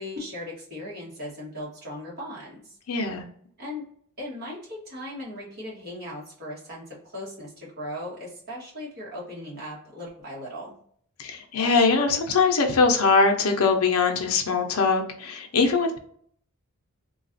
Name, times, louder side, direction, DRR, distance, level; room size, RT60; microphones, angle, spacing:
voice 1, 0.0-2.7 3.6-3.8 4.2-10.8, left 1 dB, 45° right, -5 dB, 1.3 m, -38 dB
voice 2, 2.9-3.3 11.2-16.0, left 4 dB, 75° left, 4 dB, 0.6 m, -22 dB
3.2 x 2.3 x 2.6 m, 0.62 s
head